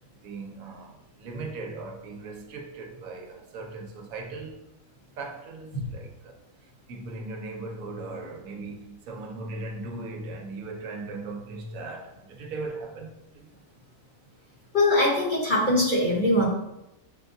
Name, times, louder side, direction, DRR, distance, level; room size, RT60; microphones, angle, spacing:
voice 1, 0.2-4.7 5.2-6.4 6.9-13.6, right 3 dB, 75° right, 1.0 m, -38 dB
voice 2, 14.7-16.5, left 1 dB, 40° left, 0.9 m, -22 dB
6.5 x 2.2 x 2.6 m
omnidirectional pair, 1.6 m